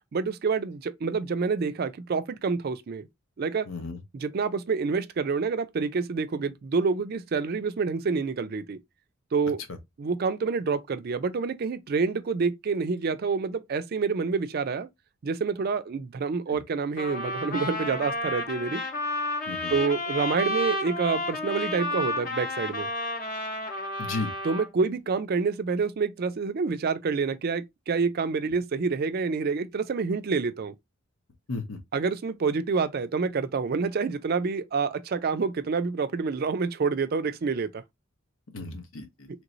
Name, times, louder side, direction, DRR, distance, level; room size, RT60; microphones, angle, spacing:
voice 1, 0.1-3.1 3.4-3.7 4.1-8.8 9.3-9.6 10.0-14.9 15.2-18.8 19.7-22.9 24.4-30.7 31.9-37.7, right 5 dB, 45° right, 0.4 m, -27 dB
voice 2, 3.7-4.0 16.5-16.6 19.5-19.7 24.0-24.3 31.5-31.8 38.5-39.3, left 3 dB, 85° left, 0.8 m, -34 dB
Trumpet, 17.0-24.7, left 1 dB, 45° left, 0.9 m, -31 dB
3.2 x 3.0 x 2.5 m
head